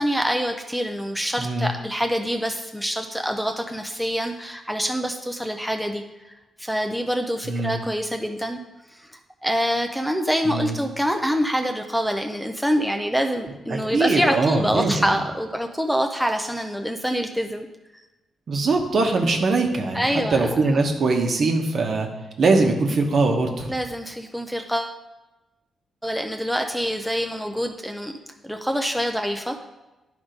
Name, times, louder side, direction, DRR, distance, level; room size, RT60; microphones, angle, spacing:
voice 1, 0.0-6.0 6.6-8.6 8.9-17.7 19.9-20.8 23.7-25.0 26.0-28.1 28.4-29.7, equal, ahead, 4 dB, 0.5 m, -25 dB
voice 2, 1.4-1.7 7.4-7.8 10.4-10.7 13.7-15.0 18.5-20.1 20.3-22.1 22.4-23.7, right 3 dB, 55° right, 3 dB, 1.1 m, -21 dB
10.5 x 3.6 x 5.1 m, 1.1 s
cardioid pair, 90°, 0 cm